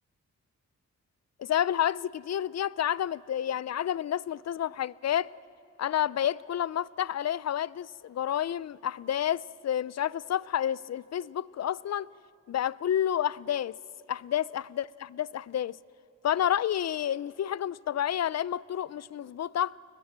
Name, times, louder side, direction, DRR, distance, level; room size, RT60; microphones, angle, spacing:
voice 1, 1.4-5.3 5.8-12.1 12.5-13.8 14.1-15.8 16.2-19.7, left 10 dB, 55° left, 0.5 m, -30 dB
29.5 x 20.5 x 7.3 m
cardioid pair, 70°, 32 cm